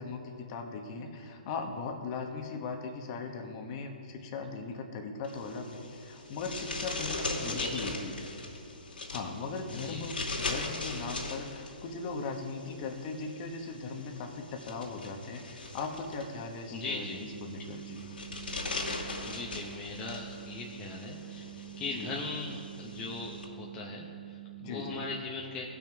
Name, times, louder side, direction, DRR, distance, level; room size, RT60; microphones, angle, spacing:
voice 1, 0.0-8.2 9.1-18.0 21.9-22.1 24.6-25.0, left 4 dB, 35° left, 3 dB, 1.3 m, -39 dB
sound 1, 5.2-23.4, left 3 dB, 85° left, 2.5 m, -40 dB
voice 2, 16.7-17.2 19.2-25.8, left 3 dB, 15° left, -3 dB, 0.9 m, -39 dB
sound 2, 17.0-25.3, right 26 dB, 40° right, 0.5 m, -47 dB
17.5 x 6.1 x 4.6 m, 2.5 s
hypercardioid pair, 145°, 5 cm